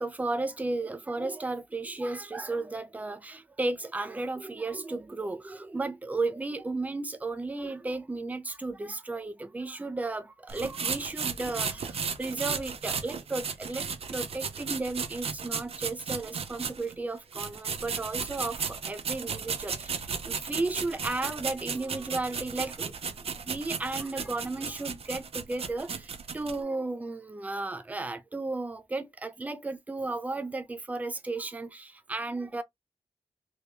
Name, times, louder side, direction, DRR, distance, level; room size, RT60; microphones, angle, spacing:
voice 1, 0.0-22.9 23.5-32.6, right 2 dB, 15° right, 0.4 m, -34 dB
sound 1, 10.5-16.9 17.3-26.6, right 6 dB, 60° right, 0.6 m, -35 dB
2.9 x 2.7 x 3.3 m
wide cardioid pair, 180°, 11 cm